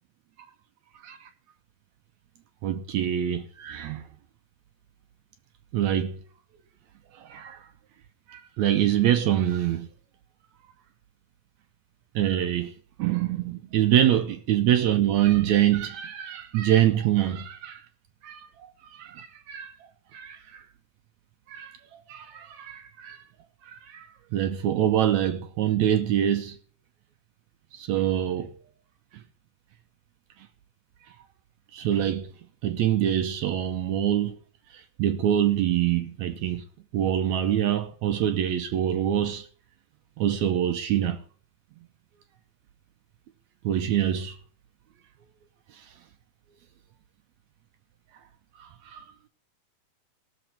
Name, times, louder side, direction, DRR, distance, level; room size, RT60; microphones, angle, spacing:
voice 1, 2.6-4.0 5.7-6.2 7.1-7.7 8.3-9.9 12.2-12.7 13.0-17.8 18.2-19.7 20.1-20.6 21.5-23.2 23.6-26.6 27.7-28.5 31.7-32.3 32.6-34.4 34.7-36.6 36.9-39.5 40.2-41.2 43.6-44.4 45.7-45.9 48.6-49.0, right 11 dB, 75° right, 1.9 m, -25 dB
18.0 x 7.1 x 4.3 m
omnidirectional pair, 3.6 m